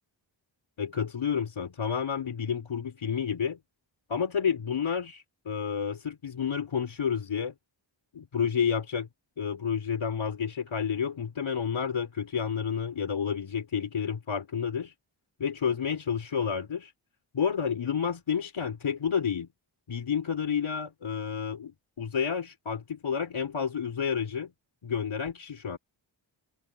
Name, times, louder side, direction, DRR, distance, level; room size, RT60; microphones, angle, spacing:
voice 1, 0.8-3.6 4.1-7.5 8.1-9.1 9.4-14.9 15.4-16.9 17.3-19.5 19.9-21.7 22.0-24.5 24.8-25.8, left 7 dB, 80° left, 4.8 m, -30 dB
wide cardioid pair, 110°, 47 cm